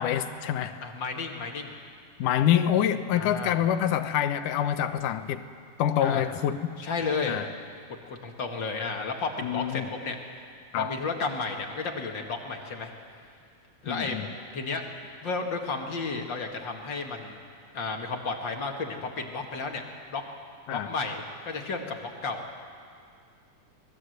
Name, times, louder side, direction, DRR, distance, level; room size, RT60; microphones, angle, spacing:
voice 1, 0.0-0.8 2.2-5.4 5.8-6.6 7.3-7.5 9.4-9.9 10.7-10.9 13.9-14.3 20.7-20.9, left 10 dB, 80° left, 10 dB, 2.5 m, -26 dB
voice 2, 0.8-1.7 3.2-3.6 6.0-6.3 6.8-7.4 8.1-10.2 10.8-12.9 13.8-14.2 14.5-14.8 15.2-17.4 17.7-19.8 20.1-20.2 20.7-22.4, left 4 dB, 40° left, 3 dB, 2.2 m, -32 dB
26.0 x 20.0 x 8.0 m, 2.2 s
omnidirectional pair, 3.7 m